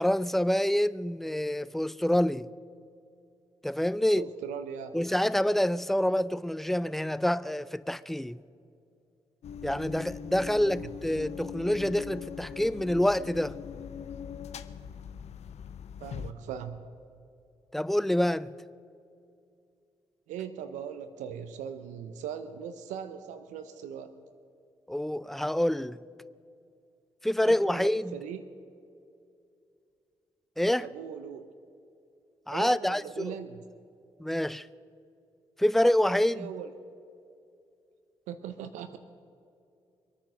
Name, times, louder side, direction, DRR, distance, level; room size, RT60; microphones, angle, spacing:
voice 1, 0.0-2.5 3.6-4.3 4.9-8.4 9.6-13.6 17.7-18.5 24.9-26.0 27.2-28.2 30.6-30.9 32.5-33.4 34.2-34.7 35.6-36.5, left 1 dB, ahead, 0.5 m, -27 dB
voice 2, 4.2-4.9 10.5-10.8 16.0-16.8 20.3-24.1 27.4-28.4 30.8-31.5 32.5-33.6 36.3-36.7 38.3-39.0, right 8 dB, 75° right, 0.7 m, -40 dB
sound 1, 9.4-16.3, left 7 dB, 60° left, 0.7 m, -41 dB
23.5 x 9.4 x 6.3 m
hypercardioid pair, 40°, 13 cm